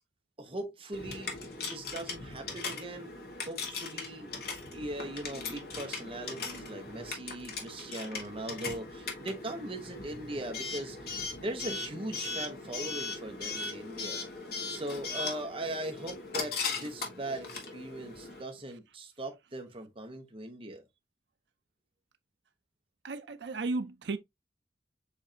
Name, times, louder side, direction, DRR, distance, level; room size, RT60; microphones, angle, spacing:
voice 1, 0.4-1.4 1.7-3.1 3.5-14.2 14.7-17.5 17.7-20.8, right 1 dB, 30° right, 1.1 m, -40 dB
Coin (dropping) / Alarm, 0.9-18.4, left 4 dB, 60° left, 1.4 m, -39 dB
voice 2, 23.0-24.2, right 3 dB, 80° right, 0.5 m, -34 dB
7.0 x 2.6 x 2.7 m
head